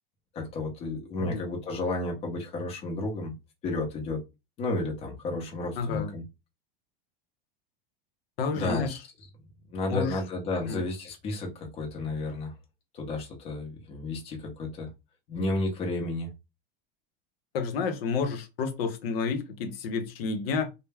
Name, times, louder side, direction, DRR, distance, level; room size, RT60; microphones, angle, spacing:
voice 1, 0.3-3.3 3.6-4.2 4.6-6.2 8.5-9.0 9.7-12.5 12.9-14.9 15.3-16.3, left 2 dB, 20° left, 0.6 m, -32 dB
voice 2, 5.8-6.1 8.4-9.0 9.9-10.1 10.7-10.8 17.5-20.7, left 5 dB, 85° left, 0.7 m, -30 dB
2.2 x 2.1 x 3.3 m
supercardioid pair, 165°, 29 cm